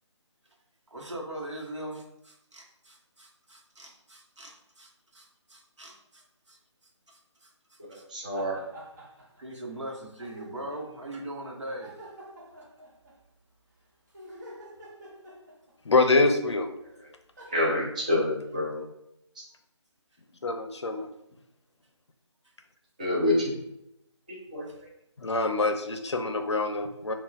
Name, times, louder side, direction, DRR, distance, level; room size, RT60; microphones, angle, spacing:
voice 1, 0.9-6.6 7.1-8.1 9.4-12.0 24.7-24.8, right 1 dB, 70° right, -1 dB, 1.0 m, -41 dB
voice 2, 7.9-8.6 17.5-18.8 23.0-23.5 24.3-24.9, left 1 dB, 15° right, -4 dB, 0.3 m, -27 dB
sound 1, 8.3-9.4 9.7-9.8 10.2-11.0 11.8-13.2 14.1-15.9 16.8-16.9 17.4-17.6, right 1 dB, 35° right, 0.9 m, -47 dB
voice 3, 15.9-16.7 20.4-21.1 25.2-27.1, left 3 dB, 65° left, 6 dB, 0.5 m, -25 dB
5.4 x 2.3 x 2.4 m, 0.80 s
figure-of-eight pair, 155°, 16 cm